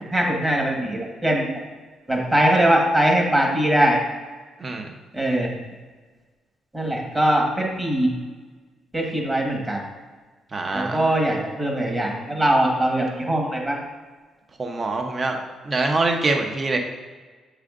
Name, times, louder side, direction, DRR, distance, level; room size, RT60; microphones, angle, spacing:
voice 1, 0.1-1.4 2.1-4.0 5.1-5.5 6.7-8.1 8.9-9.8 10.7-13.8, right 1 dB, 20° right, 0 dB, 1.5 m, -21 dB
voice 2, 4.6-5.0 10.5-11.1 14.6-15.4 15.6-16.8, right 3 dB, 35° right, 3 dB, 0.8 m, -24 dB
7.7 x 4.9 x 2.5 m, 1.4 s
cardioid pair, 90°, 0 cm